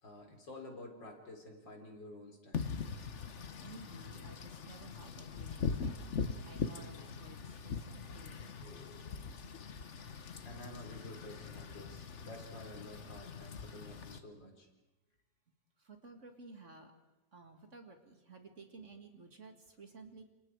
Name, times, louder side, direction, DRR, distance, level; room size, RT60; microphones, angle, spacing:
voice 1, 0.0-2.7 8.6-9.2 10.4-14.7, left 1 dB, 85° left, 2 dB, 4.7 m, -51 dB
Wind / Rain, 2.5-14.2, left 5 dB, 45° left, 1.3 m, -42 dB
voice 2, 3.6-6.2 6.4-8.5 15.8-16.9 17.3-20.2, right 3 dB, 40° right, 5 dB, 2.4 m, -54 dB
29.0 x 27.5 x 4.9 m, 1.0 s
omnidirectional pair, 1.9 m